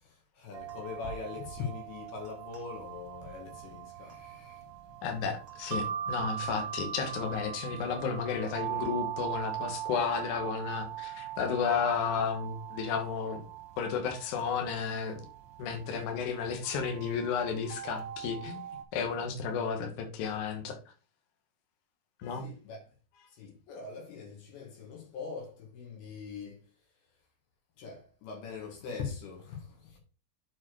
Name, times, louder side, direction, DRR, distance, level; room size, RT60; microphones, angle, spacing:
voice 1, 0.0-4.7 22.3-22.8 23.3-26.6 27.8-30.0, left 5 dB, 80° left, 3.7 m, -42 dB
sound 1, 0.5-18.8, right 10 dB, 65° right, 1.6 m, -41 dB
voice 2, 5.0-13.4 13.8-15.2 15.6-18.6 18.9-20.8 22.2-22.4, left 6 dB, 60° left, 2.5 m, -32 dB
7.2 x 4.7 x 4.6 m
omnidirectional pair, 4.5 m